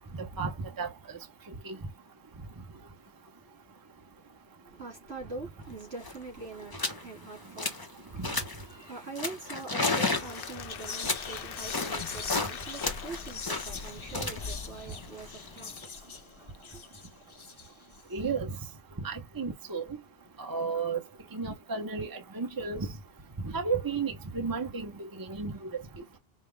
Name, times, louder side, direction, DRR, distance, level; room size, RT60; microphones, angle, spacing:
voice 1, 0.1-0.9 1.6-1.8 8.2-8.3 18.1-18.5 19.0-20.0 20.4-21.0 21.3-22.9 23.4-25.8, right 5 dB, 20° right, 0.8 m, -33 dB
voice 2, 4.6-8.2 8.5-16.1 16.7-16.8, right 3 dB, 75° right, 3.4 m, -44 dB
sound 1, 5.7-5.8 5.9-6.2 6.7-7.0 7.4-7.9 8.2-8.7 9.2-12.5 12.8-15.8, left 3 dB, 20° left, 0.9 m, -33 dB
Whispering, 9.5-9.7 9.9-18.0, left 5 dB, 40° left, 0.4 m, -42 dB
Applause / Crowd, 9.7-14.6, left 8 dB, 65° left, 0.8 m, -45 dB
5.4 x 2.1 x 3.4 m
omnidirectional pair, 1.1 m